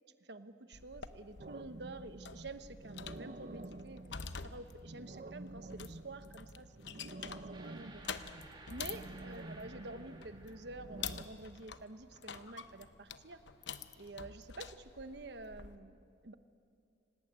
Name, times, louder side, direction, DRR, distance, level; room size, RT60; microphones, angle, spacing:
voice 1, 0.2-4.0 4.4-8.1 8.7-13.4 14.0-16.0 16.2-16.3, right 2 dB, 65° right, 10 dB, 1.1 m, -49 dB
sound 1, 0.7-15.8, left 6 dB, 75° left, 0.9 m, -48 dB
sound 2, 1.4-11.2, right 2 dB, 45° right, 0.7 m, -50 dB
sound 3, 7.5-11.4, right 3 dB, 25° right, 2.4 m, -57 dB
28.0 x 18.5 x 8.9 m, 2.5 s
head